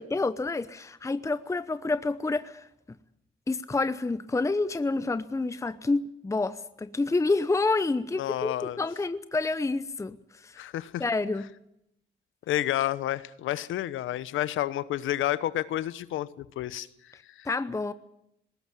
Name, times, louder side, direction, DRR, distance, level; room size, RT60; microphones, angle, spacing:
voice 1, 0.0-2.7 3.5-10.6 11.0-11.5 17.5-17.9, left 3 dB, 15° left, 0.8 m, -28 dB
voice 2, 8.2-8.8 10.6-11.0 12.5-17.5, left 13 dB, 80° left, 1.0 m, -30 dB
20.0 x 17.5 x 9.0 m
cardioid pair, 90°, 20 cm